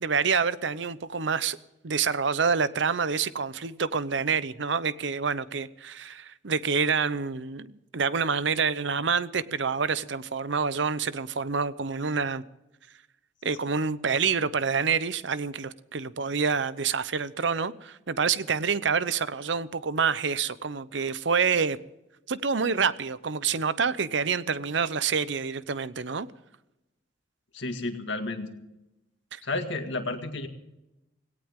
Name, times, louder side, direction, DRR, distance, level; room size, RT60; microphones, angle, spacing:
voice 1, 0.0-1.6 1.8-12.4 13.4-21.8 22.3-26.3 29.3-29.4, right 5 dB, 70° right, 0.8 m, -27 dB
voice 2, 27.5-28.5 29.4-30.5, left 2 dB, 70° left, 2.1 m, -31 dB
18.0 x 18.0 x 3.7 m
head